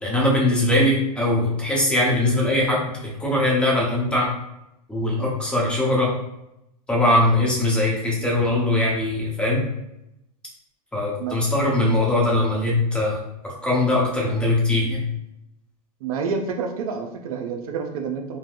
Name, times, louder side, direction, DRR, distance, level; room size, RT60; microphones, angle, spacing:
voice 1, 0.0-4.3 4.9-6.1 6.9-9.6 10.9-13.2 13.4-15.0, left 1 dB, 5° left, -4 dB, 0.8 m, -21 dB
voice 2, 16.0-18.4, right 5 dB, 65° right, 4 dB, 0.5 m, -28 dB
3.3 x 2.1 x 2.5 m, 0.86 s
hypercardioid pair, 120°, 20 cm